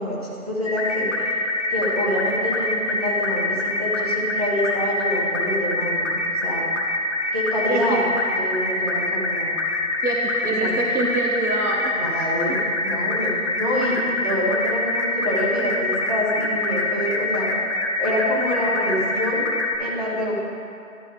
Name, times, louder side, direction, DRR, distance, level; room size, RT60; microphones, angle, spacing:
voice 1, 0.0-1.3 1.7-6.6 7.3-8.1 8.4-9.6 10.6-10.7 11.9-17.5 18.0-19.5 19.8-20.3, equal, 25° right, -7 dB, 1.1 m, -26 dB
sound 1, 0.6-19.8, left 2 dB, 50° left, 0.9 m, -25 dB
voice 2, 7.7-8.0 10.0-12.0 12.5-12.6, right 2 dB, 85° right, -1 dB, 1.0 m, -25 dB
11.5 x 6.5 x 3.0 m, 2.5 s
figure-of-eight pair, 175°, 44 cm